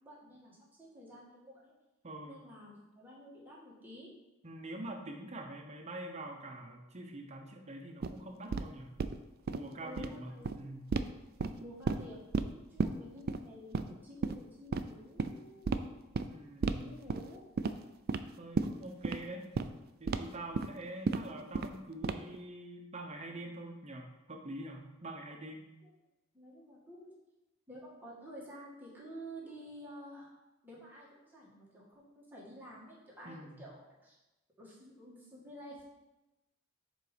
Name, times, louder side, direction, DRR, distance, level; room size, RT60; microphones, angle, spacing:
voice 1, 0.0-1.7 2.2-4.1 9.8-10.7 11.4-12.3 12.7-15.7 16.8-17.4 26.3-27.1 27.7-30.3 30.6-34.2 34.6-35.8, equal, 10° right, -6 dB, 1.8 m, -50 dB
voice 2, 2.0-2.4 4.4-8.9 9.5-10.9 16.3-16.9 18.4-19.5 20.0-25.6 33.2-33.7, right 1 dB, 35° right, 3 dB, 0.9 m, -45 dB
sound 1, 8.0-8.1 8.5-8.6 9.0-9.2 9.5-9.6 9.9-10.1 10.4-10.6 10.9-11.1 11.4-12.0 12.3-12.5 12.8-12.9 13.3-13.4 13.7-13.9 14.2-14.3 14.7-14.8 15.2-15.3 15.7-15.8 16.1-16.3 16.6-16.8 17.1-17.3 17.6-17.7 18.1-18.2 18.6-18.7 19.0-19.2 19.6-19.7 20.1-20.2 20.5-20.7 21.1-21.2 21.5-21.8 22.0-22.4, right 4 dB, 50° right, 0.4 m, -32 dB
7.4 x 4.1 x 5.1 m, 1.0 s
head